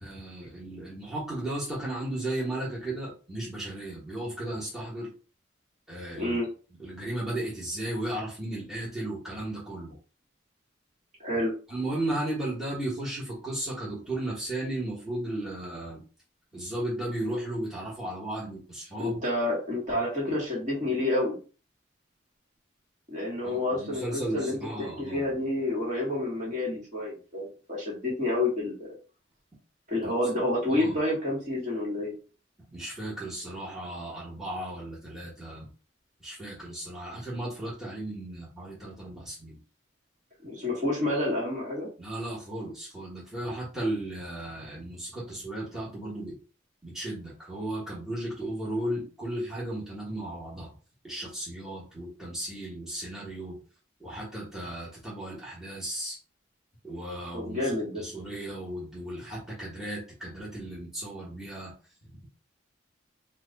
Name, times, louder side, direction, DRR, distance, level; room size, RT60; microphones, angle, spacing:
voice 1, 0.0-5.1 5.9-6.4 6.8-9.9 11.7-16.0 16.5-19.2 23.4-25.3 30.0-30.1 30.7-31.0 32.7-35.7 36.2-39.6 42.0-46.3 46.8-50.7 51.0-53.6 54.0-56.2 56.8-61.7, right 1 dB, ahead, -6 dB, 1.1 m, -35 dB
voice 2, 6.2-6.5 11.2-11.5 19.0-21.4 23.1-28.9 29.9-32.1 40.4-41.9 57.3-58.0, left 1 dB, 40° right, -4 dB, 1.4 m, -29 dB
3.0 x 2.3 x 3.9 m, 0.37 s
head